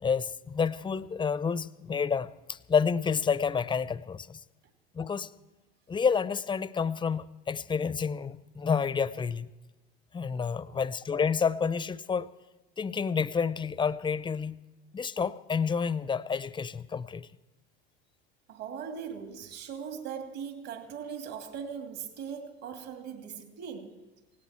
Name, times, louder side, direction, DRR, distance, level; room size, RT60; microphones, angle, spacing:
voice 1, 0.0-4.4 4.9-5.3 5.9-9.5 10.1-12.3 12.8-14.6 14.9-17.3, left 6 dB, 15° left, 0.6 m, -29 dB
voice 2, 18.5-23.9, right 7 dB, 55° right, 2.9 m, -40 dB
18.0 x 17.5 x 4.4 m
supercardioid pair, 95°, 30 cm